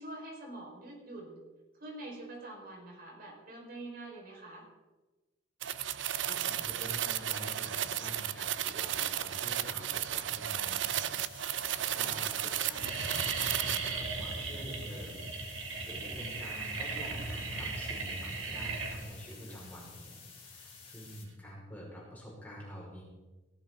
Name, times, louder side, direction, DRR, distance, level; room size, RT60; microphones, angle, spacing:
voice 1, 0.0-1.4 1.8-4.6 9.3-9.4, right 2 dB, 50° right, -2 dB, 5.2 m, -45 dB
sound 1, 5.6-14.0, right 11 dB, 75° right, 0.6 m, -34 dB
voice 2, 6.3-11.1 11.8-15.3 15.9-23.0, equal, 10° left, -5 dB, 5.2 m, -47 dB
sound 2, 10.3-10.7 11.4-11.5 11.8-12.1 12.4-21.3, right 3 dB, 90° right, 2.6 m, -38 dB
sound 3, 11.2-21.2, left 6 dB, 30° left, 4.7 m, -53 dB
18.0 x 15.0 x 4.0 m, 1.2 s
head